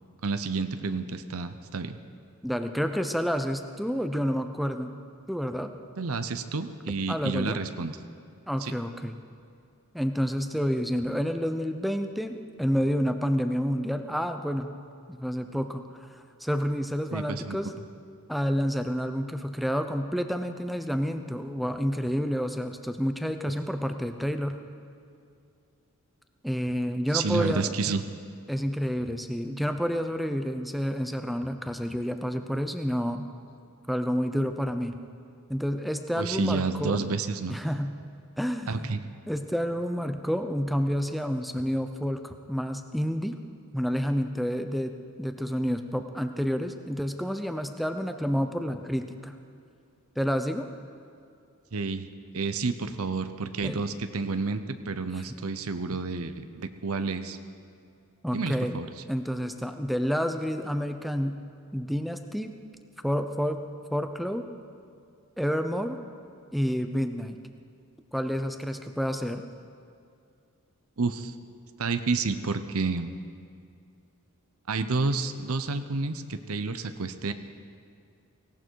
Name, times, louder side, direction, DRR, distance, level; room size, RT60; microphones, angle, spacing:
voice 1, 0.2-2.0 6.0-7.9 8.6-8.7 17.1-17.6 27.1-28.0 36.2-37.6 38.7-39.0 51.7-52.1 52.3-57.4 58.3-58.9 71.0-71.3 71.8-73.1 74.7-77.3, right 4 dB, 70° right, 10 dB, 0.8 m, -30 dB
voice 2, 2.4-5.0 5.3-5.7 7.1-7.6 8.5-9.2 9.9-14.7 15.1-17.8 18.3-24.6 26.4-27.7 28.5-33.3 33.9-35.0 35.5-37.0 37.5-37.9 38.4-38.9 39.3-43.4 43.7-49.3 50.2-50.7 53.6-53.8 55.1-55.2 58.2-58.8 59.1-61.4 61.7-62.5 63.0-63.6 63.9-64.5 65.4-66.0 66.5-67.4 68.1-69.4, equal, ahead, 7 dB, 0.7 m, -29 dB
18.0 x 17.0 x 4.7 m, 2.5 s
head